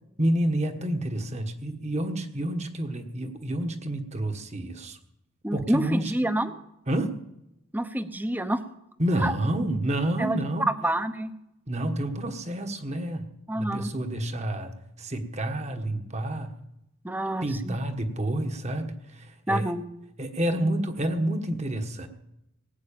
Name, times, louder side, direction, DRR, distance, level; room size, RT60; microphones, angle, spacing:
voice 1, 0.2-5.0 5.5-6.1 6.9-7.2 9.0-10.7 11.7-16.5 17.4-19.7 20.2-22.1, right 1 dB, 30° right, 7 dB, 1.4 m, -29 dB
voice 2, 5.4-6.5 7.7-8.6 9.2-9.3 10.2-10.4 10.8-11.3 13.5-13.9 17.0-17.8 19.5-19.8, right 1 dB, 10° right, 10 dB, 0.8 m, -27 dB
18.5 x 6.3 x 8.7 m, 0.87 s
head